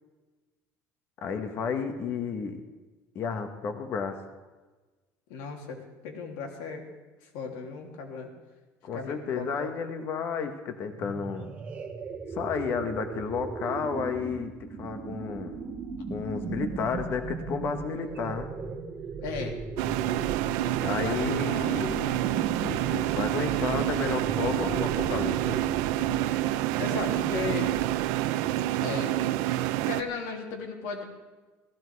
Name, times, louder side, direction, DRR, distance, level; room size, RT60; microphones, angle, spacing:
voice 1, 1.2-2.6 3.1-4.2 8.8-11.5 12.3-14.5 14.8-15.6 16.1-18.5 20.8-22.0 22.6-25.7, left 6 dB, 40° left, 7 dB, 1.3 m, -32 dB
voice 2, 5.3-6.8 7.3-8.3 8.9-9.7 19.2-19.6 20.8-22.2 26.8-27.7 28.8-31.0, left 4 dB, 80° left, 2 dB, 2.9 m, -36 dB
sound 1, 10.9-28.5, right 5 dB, 25° right, 1.4 m, -37 dB
sound 2, 19.8-30.0, right 14 dB, 80° right, 0.7 m, -28 dB
17.0 x 15.0 x 4.7 m, 1.3 s
cardioid pair, 170°, 6 cm